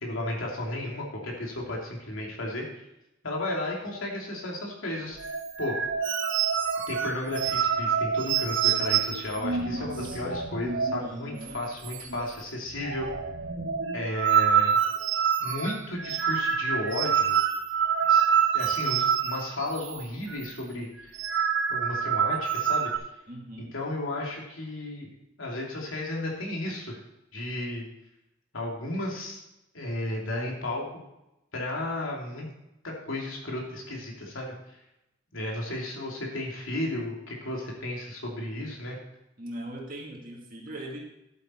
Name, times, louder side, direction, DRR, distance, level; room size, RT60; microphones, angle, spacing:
voice 1, 0.0-2.8 3.2-5.2 5.6-5.8 6.9-13.1 13.9-14.8 15.4-17.4 18.1-18.3 18.5-21.1 21.7-22.9 23.7-25.1 25.4-27.0 27.3-27.9 28.5-29.4 29.7-30.9 31.5-32.5 33.0-34.5 35.3-39.0, left 1 dB, 85° left, -2 dB, 2.9 m, -33 dB
sound 1, 5.2-11.1 11.4-11.6 11.8-12.4 12.7-20.0 20.3-20.5 21.0-23.0, right 7 dB, 70° right, 1.1 m, -27 dB
voice 2, 9.6-10.3 11.0-11.6 23.3-23.7 39.4-41.0, right 1 dB, 45° right, 0 dB, 2.2 m, -40 dB
11.0 x 8.6 x 4.5 m, 0.88 s
head